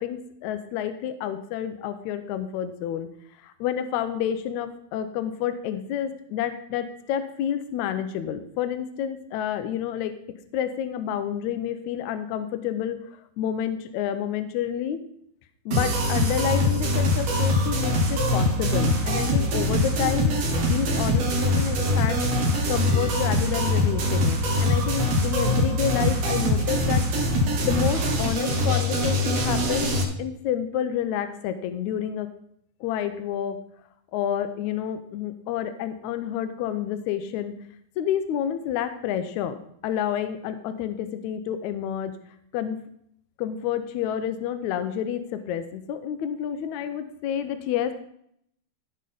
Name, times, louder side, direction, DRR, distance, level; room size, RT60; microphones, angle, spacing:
voice 1, 0.0-3.1 3.4-10.2 10.5-13.0 13.4-15.0 15.7-22.3 22.7-27.1 27.6-29.9 30.2-32.3 32.8-33.6 34.1-37.5 38.0-39.6 39.8-42.1 42.5-42.8 43.4-47.9, left 9 dB, 80° left, 9 dB, 2.0 m, -29 dB
sound 1, 15.7-30.0, left 1 dB, 60° right, 2.7 m, -23 dB
15.5 x 5.5 x 3.9 m, 0.70 s
omnidirectional pair, 3.5 m